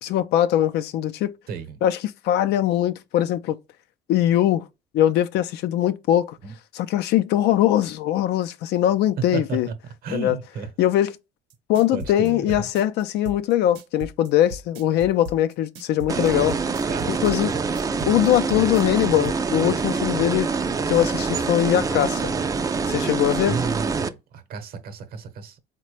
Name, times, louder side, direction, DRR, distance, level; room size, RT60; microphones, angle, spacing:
voice 1, 0.0-1.3 1.8-3.6 4.1-4.6 4.9-6.4 6.7-9.7 10.1-10.4 10.8-11.1 11.7-16.5 17.1-17.5 18.1-20.5 20.9-22.3 22.9-23.6, left 12 dB, 75° left, 0.4 m, -21 dB
voice 2, 1.5-1.8 6.4-6.5 9.3-9.7 10.0-10.7 11.9-12.6 16.1-16.5 16.9-17.7 23.5-25.6, right 6 dB, 65° right, 0.8 m, -33 dB
sound 1, 11.5-19.4, right 1 dB, 90° right, 0.8 m, -37 dB
sound 2, 16.1-24.1, right 4 dB, 20° right, 0.3 m, -25 dB
4.0 x 2.2 x 3.1 m
cardioid pair, 110°, 17 cm